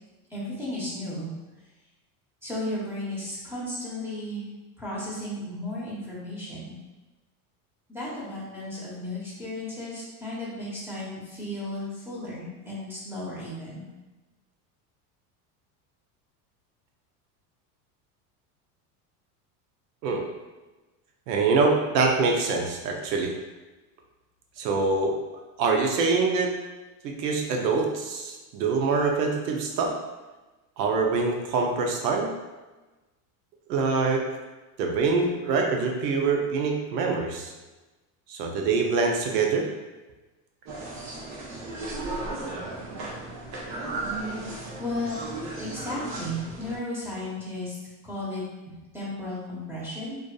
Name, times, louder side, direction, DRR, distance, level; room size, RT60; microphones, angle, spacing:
voice 1, 0.3-1.3 2.4-4.4 4.8-6.8 7.9-13.8 44.3-44.4 44.8-45.3 45.6-47.8 48.0-48.4 48.9-50.2, left 1 dB, 5° right, -8 dB, 1.0 m, -34 dB
voice 2, 21.3-23.3 24.6-25.1 25.6-26.5 27.0-29.9 30.8-32.3 33.7-34.2 34.8-37.5 38.3-39.7, right 4 dB, 85° right, 2 dB, 0.7 m, -24 dB
sound 1, 40.7-46.8, right 2 dB, 35° right, 0.7 m, -35 dB
2.5 x 2.5 x 2.3 m, 1.1 s
supercardioid pair, 100°, 48 cm